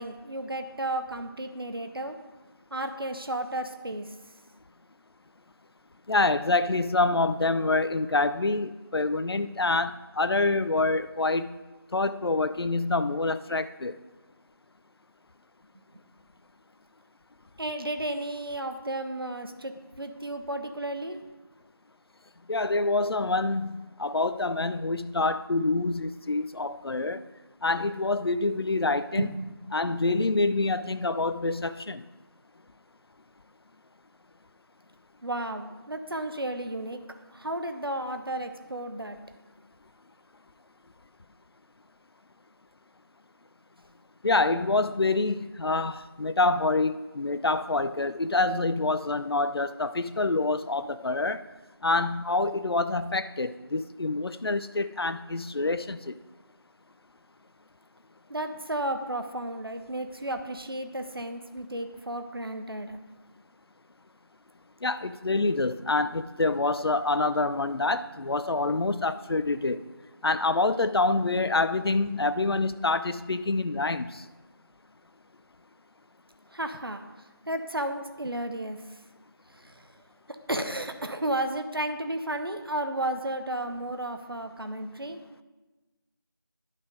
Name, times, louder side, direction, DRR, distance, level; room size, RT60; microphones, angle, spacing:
voice 1, 0.0-2.2 2.7-4.2 17.6-21.2 29.2-29.3 35.2-37.0 37.3-39.2 58.3-63.0 76.5-77.0 77.5-79.0 79.5-79.9 80.5-85.2, right 1 dB, 75° right, 7 dB, 0.8 m, -33 dB
voice 2, 6.1-11.5 11.9-14.0 22.5-27.2 27.6-29.3 29.7-32.0 44.2-51.4 51.8-56.2 64.8-69.8 70.2-74.2, left 3 dB, 85° left, 12 dB, 0.4 m, -26 dB
11.5 x 4.1 x 5.0 m, 1.2 s
figure-of-eight pair, 180°, 12 cm